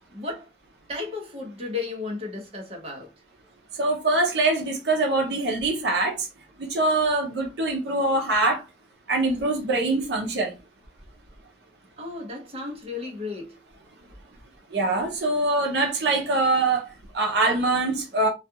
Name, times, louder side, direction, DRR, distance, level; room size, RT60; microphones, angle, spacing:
voice 1, 0.1-0.5 0.9-3.1 12.0-13.6, left 3 dB, 35° right, 0.8 m, -34 dB
voice 2, 3.7-6.3 6.6-8.6 9.1-10.5 14.7-18.3, right 2 dB, 70° right, 0.6 m, -23 dB
2.4 x 2.3 x 2.7 m
head